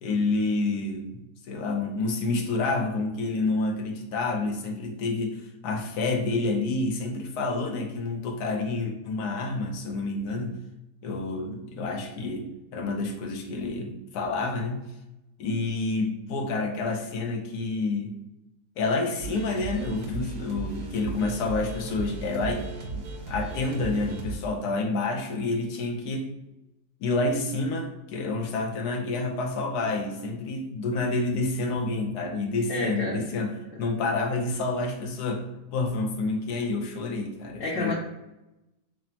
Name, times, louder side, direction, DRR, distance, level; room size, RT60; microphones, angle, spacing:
voice 1, 0.0-5.4 5.6-10.5 11.0-12.5 12.7-14.8 15.4-18.1 18.8-22.6 22.9-26.3 27.0-33.5 33.8-35.4 35.7-37.9, left 3 dB, 80° left, 2 dB, 1.2 m, -28 dB
sound 1, 19.2-24.4, right 4 dB, 90° right, 1.3 m, -36 dB
voice 2, 32.7-33.2 33.7-33.8 37.6-37.9, left 2 dB, 60° left, -5 dB, 1.1 m, -29 dB
6.0 x 2.1 x 2.8 m, 0.95 s
omnidirectional pair, 1.7 m